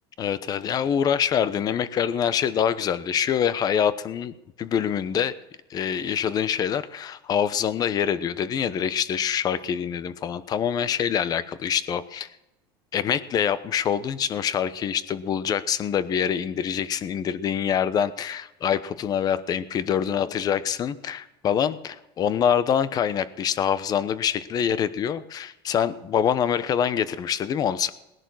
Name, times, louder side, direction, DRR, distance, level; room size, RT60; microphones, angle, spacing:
voice 1, 0.2-5.3 5.7-12.3 12.9-27.9, left 8 dB, 30° left, 15 dB, 0.9 m, -25 dB
19.0 x 11.0 x 6.2 m, 0.94 s
supercardioid pair, 145°, 13 cm